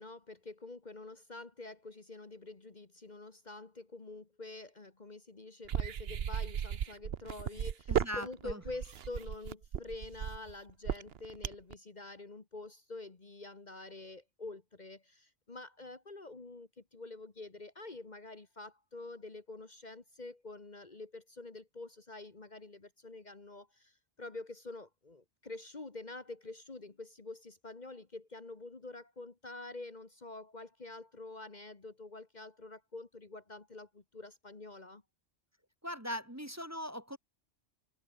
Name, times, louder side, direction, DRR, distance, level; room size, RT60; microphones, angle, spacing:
voice 1, 0.0-35.0, left 2 dB, 40° left, 1.6 m, -47 dB
sound 1, 5.6-11.7, right 8 dB, 60° right, 1.0 m, -35 dB
voice 2, 7.9-8.6 35.8-37.2, equal, 15° right, 1.9 m, -40 dB
omnidirectional pair, 1.2 m